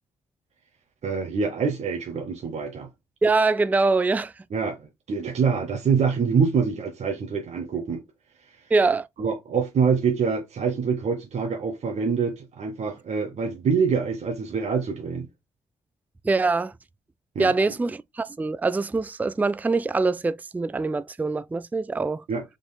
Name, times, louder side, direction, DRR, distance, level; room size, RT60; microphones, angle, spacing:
voice 1, 1.0-2.9 4.5-4.8 5.1-8.0 9.2-15.3 17.4-17.5 22.3-22.4, right 5 dB, 60° right, 0.8 m, -25 dB
voice 2, 3.2-4.3 8.7-9.1 16.2-16.7 17.4-22.2, right 3 dB, 15° right, 0.3 m, -23 dB
4.9 x 3.6 x 2.2 m
supercardioid pair, 45°, 13 cm